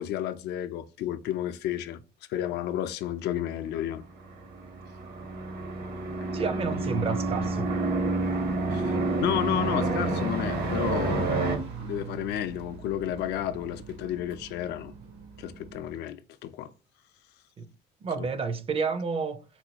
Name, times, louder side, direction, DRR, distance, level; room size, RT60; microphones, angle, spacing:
voice 1, 0.0-2.0 2.3-4.0 8.7-14.9 15.4-16.7 18.2-18.3, left 11 dB, 80° left, 0.4 m, -32 dB
sound 1, 4.2-11.6, right 3 dB, 60° right, 0.9 m, -29 dB
voice 2, 6.3-7.7 17.6-17.7 18.0-19.4, right 5 dB, 35° right, 0.5 m, -30 dB
sound 2, 9.2-15.9, right 4 dB, 75° right, 1.2 m, -42 dB
4.2 x 2.2 x 2.8 m
cardioid pair, 110°, 17 cm